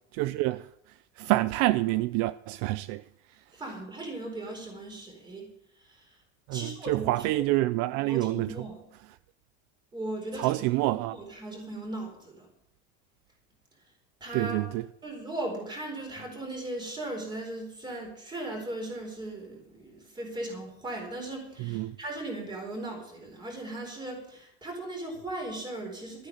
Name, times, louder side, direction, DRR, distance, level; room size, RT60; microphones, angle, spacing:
voice 1, 0.1-0.7 1.2-3.0 6.5-8.5 10.3-11.2 14.3-14.8 21.6-22.0, right 18 dB, 60° right, 0.5 m, -27 dB
voice 2, 3.5-5.5 5.8-6.1 6.5-7.1 8.1-8.8 9.9-10.6 10.9-12.5 14.2-14.6 15.0-26.3, right 1 dB, 15° right, 4.3 m, -38 dB
13.0 x 9.5 x 6.6 m
cardioid pair, 170°, 30 cm